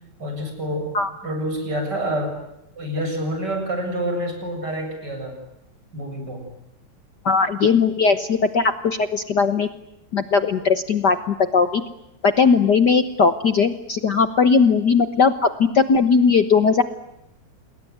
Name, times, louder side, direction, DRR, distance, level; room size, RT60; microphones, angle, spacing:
voice 1, 0.2-0.9 1.2-2.4 2.8-5.4 5.9-6.5, right 1 dB, 35° right, 4 dB, 8.1 m, -27 dB
voice 2, 7.2-9.7 10.1-11.8 12.2-16.8, left 5 dB, 55° left, 11 dB, 1.2 m, -18 dB
28.5 x 21.0 x 9.4 m, 0.83 s
omnidirectional pair, 3.3 m